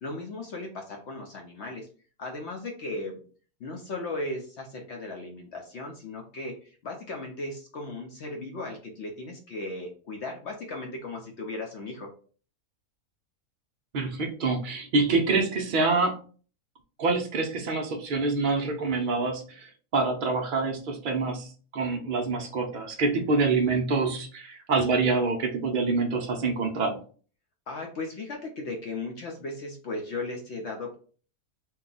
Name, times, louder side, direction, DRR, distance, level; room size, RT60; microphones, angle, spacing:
voice 1, 0.0-1.9 2.2-3.2 3.6-12.1 27.7-30.9, left 2 dB, 60° left, 1 dB, 0.7 m, -36 dB
voice 2, 13.9-16.2 17.0-27.0, right 3 dB, 70° right, 2 dB, 0.4 m, -26 dB
2.8 x 2.3 x 3.8 m, 0.40 s
omnidirectional pair, 1.6 m